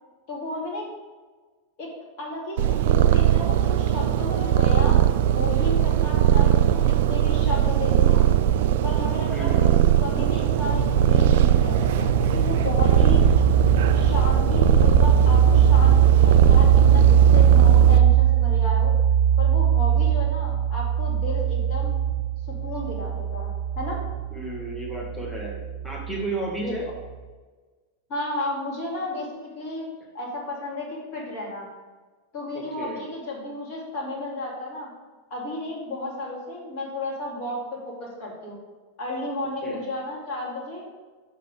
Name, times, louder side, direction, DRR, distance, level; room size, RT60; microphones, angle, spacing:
voice 1, 0.3-0.8 1.8-1.9 2.2-5.0 5.3-6.8 7.1-8.2 8.8-9.7 10.0-13.2 13.9-18.9 19.4-22.0 22.5-24.0 26.6-26.9 28.1-29.9 30.1-31.7 32.3-34.9 35.3-38.6 39.0-40.8, left 1 dB, 40° left, -3 dB, 2.4 m, -33 dB
Purr, 2.6-18.0, right 10 dB, 55° right, 0.3 m, -20 dB
voice 2, 9.3-9.7 24.3-25.6 25.8-26.8 32.5-33.0 39.6-39.8, right 2 dB, ahead, -5 dB, 1.7 m, -32 dB
sound 1, 10.7-26.1, right 8 dB, 80° left, 1.2 m, -20 dB
6.8 x 5.8 x 5.1 m, 1.4 s
figure-of-eight pair, 90°, 0 cm